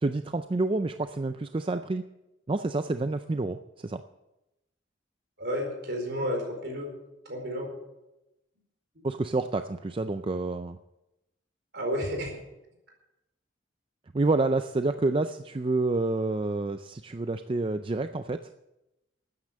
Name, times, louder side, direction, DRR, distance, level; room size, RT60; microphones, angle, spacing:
voice 1, 0.0-2.0 2.5-4.0 9.0-10.8 14.1-18.4, right 2 dB, 25° right, 9 dB, 0.4 m, -28 dB
voice 2, 5.4-6.9 7.2-7.7 11.7-12.4, equal, 60° right, 2 dB, 4.6 m, -31 dB
13.5 x 9.6 x 7.5 m, 0.95 s
head